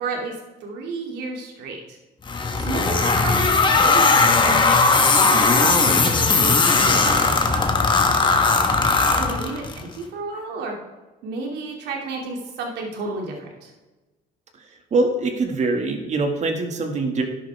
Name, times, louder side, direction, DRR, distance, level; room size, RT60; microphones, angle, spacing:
voice 1, 0.0-2.0 2.6-4.6 5.6-7.6 9.1-10.7 11.2-13.7, right 3 dB, 80° right, 0 dB, 2.7 m, -31 dB
sound 1, 2.3-9.8, left 4 dB, 30° left, 1.4 m, -18 dB
voice 2, 14.9-17.2, right 3 dB, 45° right, 4 dB, 2.1 m, -23 dB
12.5 x 10.5 x 3.6 m, 1.1 s
cardioid pair, 110°, 17 cm